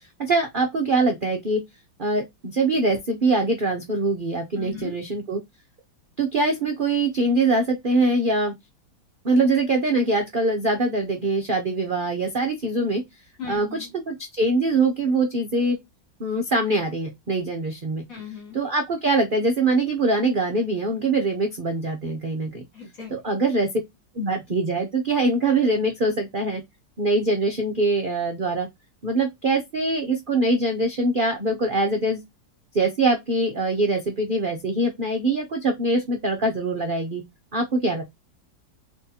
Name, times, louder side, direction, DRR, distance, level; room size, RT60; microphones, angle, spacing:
voice 1, 0.2-1.6 2.0-5.4 6.2-8.5 9.2-13.0 13.5-15.8 16.2-18.0 18.5-22.6 23.1-23.7 24.1-26.6 27.0-28.7 29.0-32.2 32.7-37.2 37.5-38.0, right 2 dB, 60° right, 0.5 m, -23 dB
voice 2, 4.6-4.9 13.4-13.9 18.1-18.6 22.7-23.1, left 5 dB, 45° left, 2.5 m, -37 dB
4.0 x 3.3 x 2.7 m
omnidirectional pair, 2.1 m